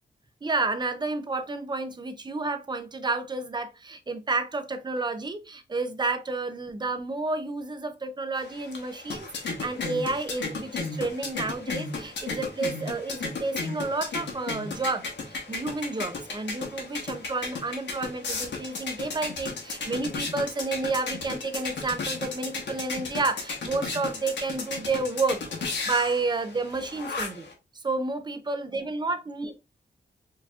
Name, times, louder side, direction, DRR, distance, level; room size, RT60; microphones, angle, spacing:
voice 1, 0.4-27.5 27.7-29.6, right 3 dB, 25° right, 0.5 m, -30 dB
sound 1, 8.4-27.5, left 4 dB, 85° left, 1.0 m, -35 dB
4.5 x 2.8 x 2.3 m
wide cardioid pair, 130°, 18 cm